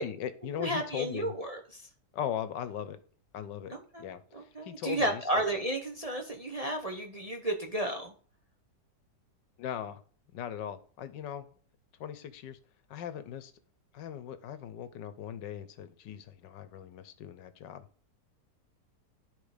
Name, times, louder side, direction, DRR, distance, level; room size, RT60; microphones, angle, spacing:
voice 1, 0.0-1.3 2.1-3.0 3.3-3.7 4.0-4.2 4.6-5.4 9.6-10.0 10.3-11.5 12.0-12.6 12.9-13.5 13.9-17.9, left 9 dB, 90° left, 12 dB, 1.5 m, -39 dB
voice 2, 0.6-1.8 3.7-8.1, right 1 dB, 30° right, 2 dB, 0.7 m, -33 dB
11.5 x 3.8 x 5.0 m, 0.43 s
omnidirectional pair, 1.9 m